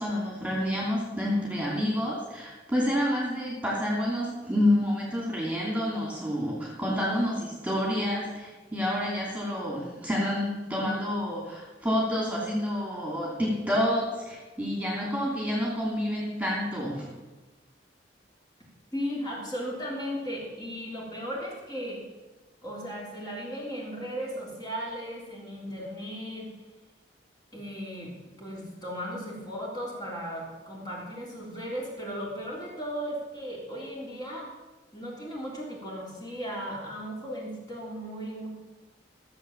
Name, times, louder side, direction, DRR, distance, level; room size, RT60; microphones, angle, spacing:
voice 1, 0.0-17.1, left 1 dB, 10° right, -4 dB, 2.9 m, -28 dB
voice 2, 18.9-22.0 22.6-26.5 27.5-28.1 28.4-34.5 34.9-38.5, equal, 20° left, -4 dB, 3.4 m, -36 dB
15.0 x 7.6 x 7.1 m, 1.2 s
head